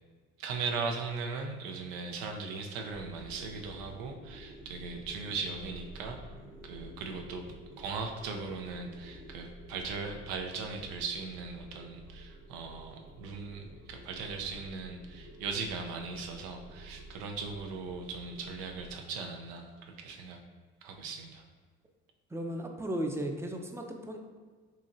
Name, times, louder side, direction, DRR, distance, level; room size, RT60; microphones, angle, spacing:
voice 1, 0.4-6.2 6.6-7.4 7.8-20.4 20.8-21.4, right 4 dB, 80° right, 3 dB, 0.5 m, -38 dB
sound 1, 2.9-18.9, right 1 dB, 60° right, 1.0 m, -50 dB
voice 2, 22.3-24.2, right 1 dB, 10° right, 3 dB, 0.5 m, -35 dB
3.9 x 2.9 x 2.5 m, 1.5 s
hypercardioid pair, 55°, 34 cm